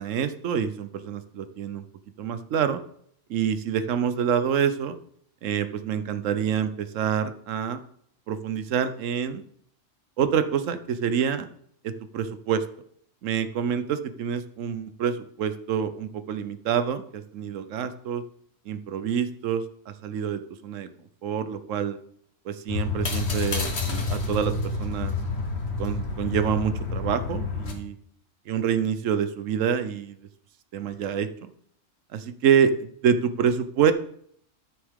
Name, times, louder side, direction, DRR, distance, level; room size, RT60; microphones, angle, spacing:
voice 1, 0.0-1.9 2.2-2.8 3.3-5.0 5.4-7.8 8.3-9.4 10.2-11.5 11.8-12.6 13.2-18.2 18.7-20.9 21.2-22.0 22.4-25.2 25.8-27.9 28.5-30.2 30.7-31.5 32.1-33.9, right 8 dB, 80° right, 11 dB, 1.1 m, -27 dB
sound 1, 22.7-27.7, left 3 dB, 55° left, 1.6 m, -29 dB
13.0 x 6.6 x 3.7 m, 0.66 s
omnidirectional pair, 1.3 m